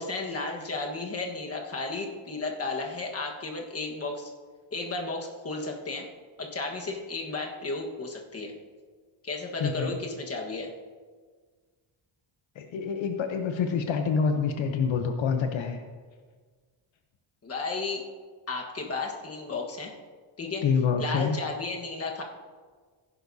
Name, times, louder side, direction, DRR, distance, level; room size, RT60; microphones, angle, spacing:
voice 1, 0.0-4.3 4.7-6.1 6.4-8.5 9.2-10.7 17.4-18.0 18.5-19.9 20.4-20.6 21.0-22.2, left 3 dB, 30° left, 1 dB, 1.4 m, -33 dB
voice 2, 9.6-10.0 12.6-15.8 20.6-21.4, left 6 dB, 70° left, 5 dB, 0.9 m, -27 dB
15.5 x 11.0 x 2.7 m, 1.5 s
wide cardioid pair, 170°, 49 cm